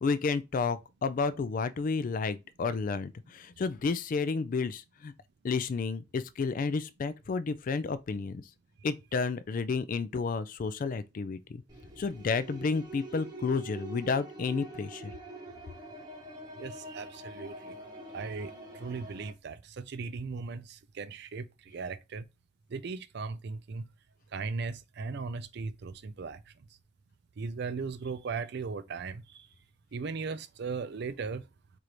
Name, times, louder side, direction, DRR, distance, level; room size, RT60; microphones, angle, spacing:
voice 1, 0.0-5.1 5.4-8.4 8.8-11.6 12.0-15.1, left 4 dB, 40° left, 0.3 m, -31 dB
sound 1, 11.7-19.3, right 1 dB, 20° right, 0.9 m, -45 dB
voice 2, 16.6-17.8 18.1-22.3 22.7-23.9 24.3-26.4 27.4-29.5 29.9-31.4, right 4 dB, 55° right, 0.4 m, -37 dB
4.7 x 2.6 x 2.9 m
head